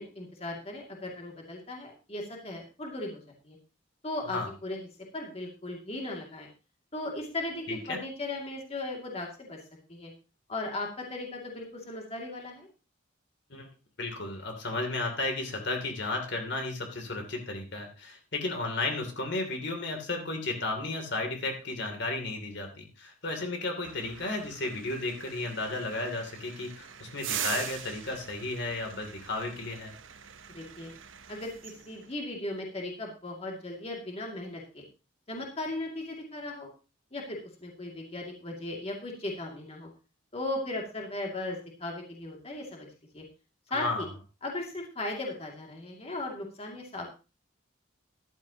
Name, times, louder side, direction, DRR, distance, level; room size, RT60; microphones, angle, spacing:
voice 1, 0.0-3.6 4.0-4.8 5.1-6.5 6.9-9.6 9.9-10.1 10.5-12.7 30.5-30.9 31.3-34.8 35.3-36.7 37.1-39.9 40.3-42.9 43.1-43.2 43.7-44.1 44.4-47.1, left 2 dB, 30° left, 0 dB, 2.4 m, -37 dB
voice 2, 7.7-8.0 13.5-13.7 14.0-29.9 43.7-44.1, left 2 dB, 60° left, 3 dB, 2.9 m, -33 dB
sound 1, 23.8-32.2, right 9 dB, 80° right, 1.0 m, -42 dB
14.0 x 12.0 x 2.9 m, 0.32 s
head